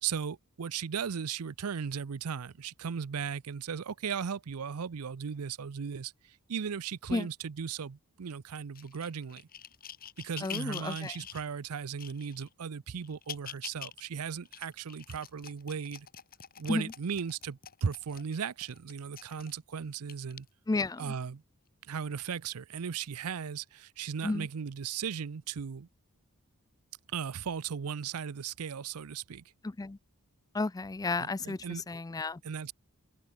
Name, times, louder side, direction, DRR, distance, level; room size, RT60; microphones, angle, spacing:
voice 1, 0.0-9.4 10.2-16.1 16.6-20.5 21.0-21.4 21.9-25.9 27.1-29.4 31.2-31.8 32.4-32.7, right 6 dB, 75° right, 0.6 m, -37 dB
sound 1, 8.8-11.4 12.0-12.5 13.0-14.0 14.5-19.6 20.1-20.4 21.1-21.2, left 9 dB, 40° left, 3.3 m, -46 dB
voice 2, 10.4-11.1 16.7-16.9 20.7-21.1 24.2-24.5 29.6-30.0 30.5-32.4, left 3 dB, 15° left, 0.4 m, -32 dB
head